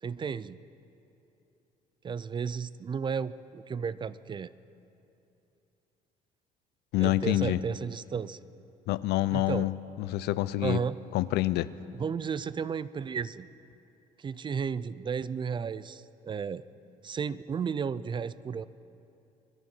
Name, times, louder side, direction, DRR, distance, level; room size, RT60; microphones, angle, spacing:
voice 1, 0.0-0.6 2.0-4.5 7.0-8.4 9.3-9.7 10.6-11.0 11.9-13.5 14.2-16.6 17.0-18.7, right 6 dB, 30° right, 17 dB, 0.4 m, -33 dB
voice 2, 6.9-7.6 8.9-9.7 10.0-10.8 11.1-11.7, left 16 dB, 80° left, 16 dB, 0.5 m, -27 dB
24.0 x 11.0 x 5.6 m, 2.8 s
cardioid pair, 110°, 17 cm